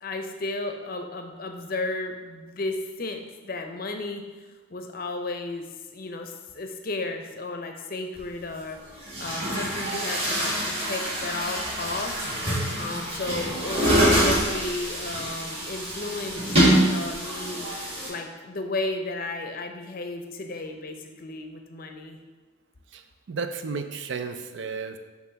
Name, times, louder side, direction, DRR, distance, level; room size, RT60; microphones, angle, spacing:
voice 1, 0.0-4.2 4.7-12.2 12.8-16.6 16.9-17.7 18.1-22.2, left 2 dB, 45° left, 5 dB, 0.6 m, -33 dB
Chatter / Gurgling / Tap, 8.2-8.3 9.0-18.1, right 1 dB, 25° right, 1.9 m, -25 dB
voice 2, 23.3-25.0, right 4 dB, 60° right, 8 dB, 0.4 m, -32 dB
7.1 x 3.0 x 5.7 m, 1.3 s
head